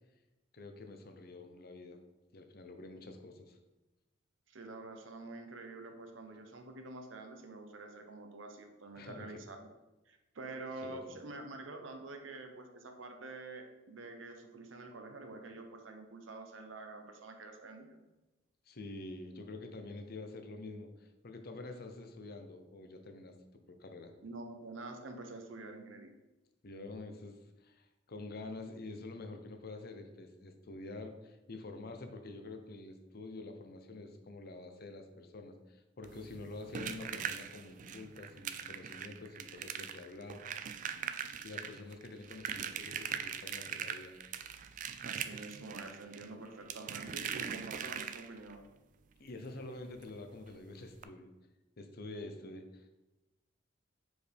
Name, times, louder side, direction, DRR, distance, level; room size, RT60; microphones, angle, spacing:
voice 1, 0.5-2.0 2.3-3.6 9.0-9.4 10.8-11.0 18.7-23.3 23.7-24.1 26.6-40.4 41.4-44.2 49.2-51.3 51.8-52.9, left 2 dB, 55° left, 6 dB, 0.7 m, -47 dB
voice 2, 4.5-9.7 10.1-18.0 24.2-26.1 45.0-48.6, right 2 dB, 85° right, 5 dB, 0.8 m, -47 dB
sound 1, 36.0-48.5 50.0-50.1 50.4-50.5 50.9-51.0, right 8 dB, 40° right, 0.3 m, -41 dB
6.5 x 4.9 x 3.4 m, 1.1 s
head